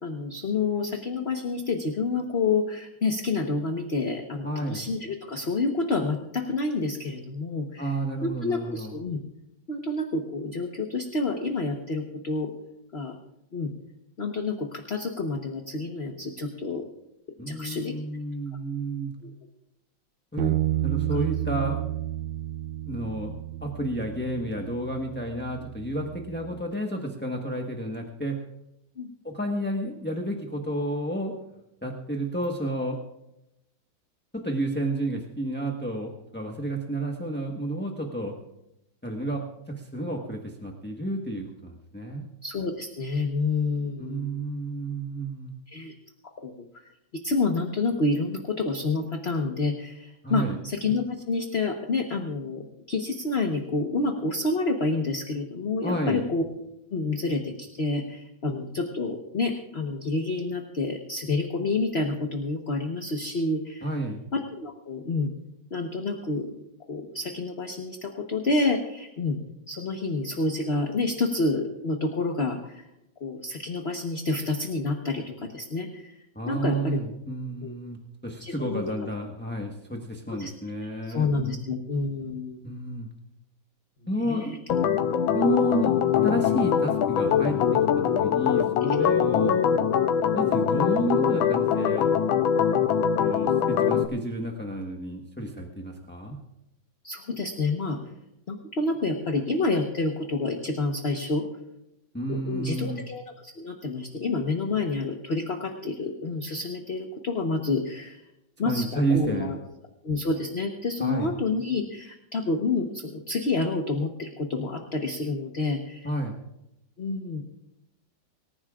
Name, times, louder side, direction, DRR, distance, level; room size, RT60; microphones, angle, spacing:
voice 1, 0.0-7.9 8.2-9.2 9.7-12.5 12.9-13.2 13.5-13.7 14.2-16.8 17.5-17.9 19.2-19.3 29.0-29.1 42.4-44.3 45.7-45.9 46.4-46.9 47.2-56.4 56.9-63.9 64.3-65.3 65.7-66.5 66.9-69.4 69.7-72.8 73.2-76.1 76.5-77.0 77.6-77.7 78.4-78.9 80.4-80.5 81.1-82.6 84.2-84.6 88.8-89.0 97.0-98.0 98.5-101.4 102.3-108.2 108.6-109.6 110.0-116.1 117.0-117.4, left 3 dB, 40° left, 3 dB, 1.2 m, -28 dB
voice 2, 4.4-4.8 7.8-8.9 17.4-19.1 20.3-20.6 20.8-21.8 22.9-23.3 23.6-28.4 29.2-31.3 31.8-33.0 34.3-38.4 39.0-42.2 44.0-45.5 50.2-50.6 55.8-56.2 63.8-64.2 76.3-78.0 78.2-81.6 82.6-83.1 84.1-84.6 85.3-87.8 88.2-89.6 90.3-92.1 93.2-96.4 102.1-103.0 108.6-109.6 111.0-111.3 116.0-116.4, right 1 dB, 5° left, 1 dB, 1.0 m, -31 dB
Bass guitar, 20.4-26.6, right 13 dB, 85° right, 1.5 m, -31 dB
Organ, 84.7-94.1, left 8 dB, 85° left, 1.6 m, -23 dB
25.5 x 15.0 x 2.5 m, 0.87 s
omnidirectional pair, 2.1 m